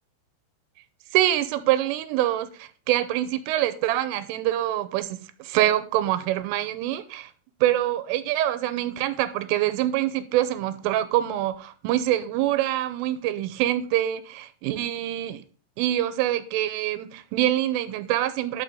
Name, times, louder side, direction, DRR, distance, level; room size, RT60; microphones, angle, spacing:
voice 1, 1.1-7.3 7.6-15.4 15.8-18.6, right 13 dB, 90° right, 3.3 m, -25 dB
11.5 x 6.5 x 3.8 m
omnidirectional pair, 5.7 m